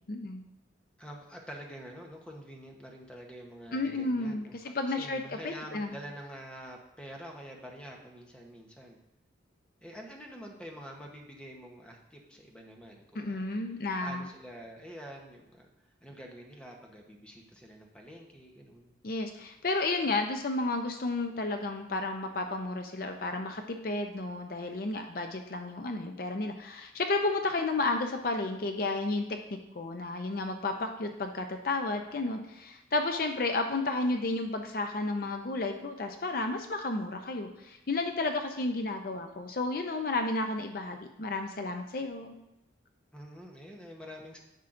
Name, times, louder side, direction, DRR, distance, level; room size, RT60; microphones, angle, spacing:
voice 1, 0.1-0.4 3.7-6.0 13.1-14.2 19.0-42.3, left 2 dB, 50° left, 5 dB, 0.5 m, -32 dB
voice 2, 1.0-9.0 9.8-13.4 14.0-15.7 16.0-19.0 43.1-44.4, equal, 5° left, 0 dB, 0.9 m, -47 dB
10.0 x 7.3 x 2.5 m, 0.89 s
head